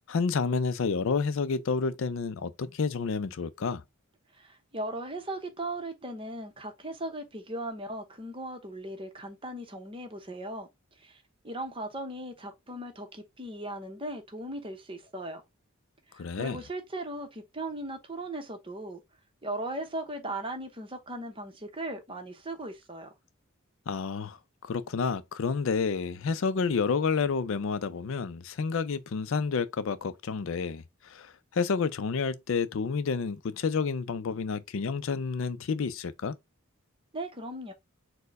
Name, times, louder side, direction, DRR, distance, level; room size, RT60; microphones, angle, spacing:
voice 1, 0.1-3.8 16.2-16.6 23.9-36.4, left 5 dB, 65° left, 0.4 m, -30 dB
voice 2, 4.3-10.7 11.0-15.4 16.1-19.0 19.4-23.1 37.1-37.7, right 1 dB, 25° right, 0.9 m, -38 dB
4.5 x 2.2 x 4.6 m
head